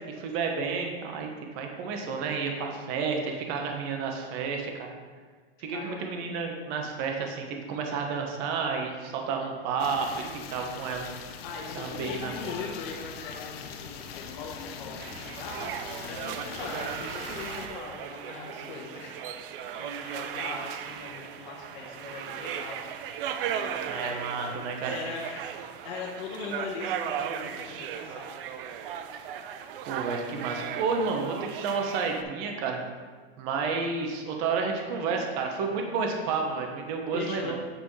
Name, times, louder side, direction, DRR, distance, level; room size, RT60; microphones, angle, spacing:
voice 1, 0.1-4.9 5.6-11.1 11.8-12.5 23.9-24.9 29.9-32.8 33.4-37.5, right 5 dB, 45° right, 2 dB, 1.2 m, -31 dB
voice 2, 5.6-6.0 11.4-19.1 19.7-22.8 23.4-24.2 24.8-28.3 37.1-37.5, left 4 dB, 55° left, -3 dB, 1.3 m, -40 dB
sound 1, 9.8-17.7, left 6 dB, 75° left, 0.8 m, -41 dB
sound 2, 15.0-32.2, right 8 dB, 60° right, 0.6 m, -37 dB
8.0 x 6.1 x 3.3 m, 1.5 s
supercardioid pair, 150°, 30 cm